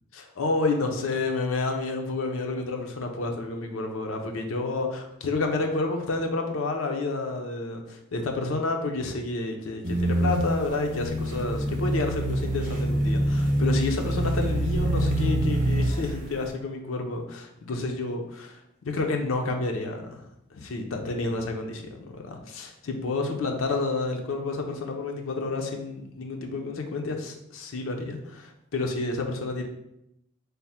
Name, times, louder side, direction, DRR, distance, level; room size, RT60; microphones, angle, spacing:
voice 1, 0.1-18.6 18.9-20.2 20.5-29.7, left 3 dB, 80° left, 4 dB, 0.5 m, -30 dB
sound 1, 9.8-16.3, right 1 dB, 40° right, 0.6 m, -25 dB
3.4 x 2.0 x 4.2 m, 0.81 s
head